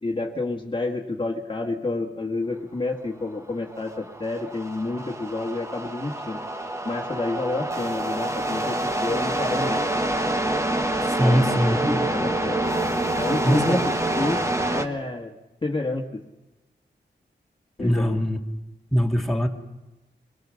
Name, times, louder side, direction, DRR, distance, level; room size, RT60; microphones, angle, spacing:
voice 1, 0.0-6.4 6.8-9.8 11.2-12.6 13.2-13.8 14.2-14.5 14.7-15.4 15.6-16.2 17.8-18.2, left 2 dB, 25° left, 1 dB, 1.7 m, -29 dB
sound 1, 3.7-14.9, right 1 dB, 15° right, 1.3 m, -26 dB
voice 2, 11.1-12.1 13.4-13.8 17.8-18.4 18.9-19.5, equal, ahead, 0 dB, 1.9 m, -22 dB
23.5 x 19.0 x 6.4 m, 1.1 s
wide cardioid pair, 130°, 18 cm